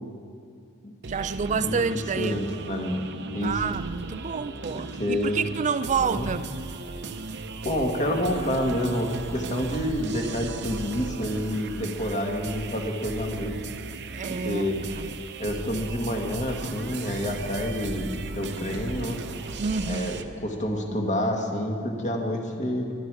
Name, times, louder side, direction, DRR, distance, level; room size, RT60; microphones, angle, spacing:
sound 1, 1.0-20.2, right 3 dB, 50° right, 0.8 m, -37 dB
voice 1, 1.1-2.5 3.4-6.5 14.1-14.7 14.9-15.1 19.6-20.3, right 6 dB, 35° right, 0.4 m, -29 dB
voice 2, 2.2-3.0 3.3-3.6 5.0-5.4 6.0-6.3 7.6-13.6 14.4-14.8 15.4-19.2 19.9-22.9, equal, 35° left, 1.8 m, -28 dB
21.5 x 12.5 x 4.8 m
head